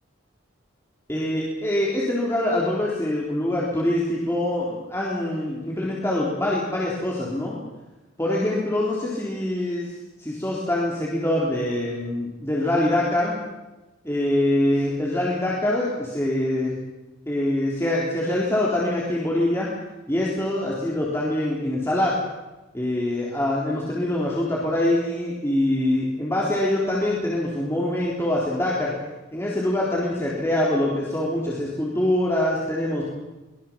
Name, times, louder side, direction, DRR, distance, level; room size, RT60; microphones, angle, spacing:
voice 1, 1.1-7.6 8.2-9.9 10.2-13.4 14.0-16.8 17.3-19.7 20.1-22.2 22.7-28.9 29.3-33.0, left 1 dB, 15° left, -5 dB, 3.7 m, -24 dB
23.5 x 21.0 x 7.5 m, 1.1 s
head